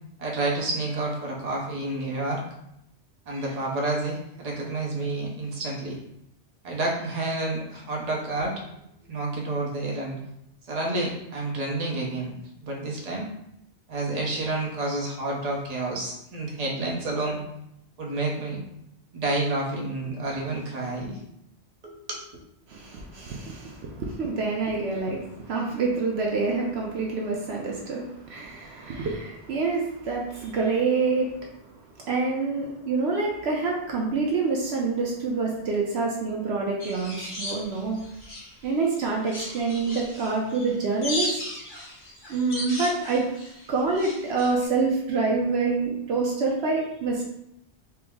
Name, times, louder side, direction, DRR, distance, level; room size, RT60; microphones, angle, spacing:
voice 1, 0.2-2.4 3.3-6.0 6.6-8.6 9.1-10.2 10.6-12.3 12.6-13.3 13.9-17.4 18.0-18.6 19.1-21.2 21.8-22.2, right 2 dB, 40° right, -2 dB, 0.8 m, -29 dB
voice 2, 22.7-31.3 32.0-38.0 38.6-41.4 42.3-43.2 43.7-47.2, right 4 dB, 70° right, -1 dB, 0.8 m, -27 dB
sound 1, 36.8-38.6 39.0-44.7, left 1 dB, 45° left, 1.0 m, -36 dB
4.4 x 2.0 x 3.5 m, 0.80 s
omnidirectional pair, 1.2 m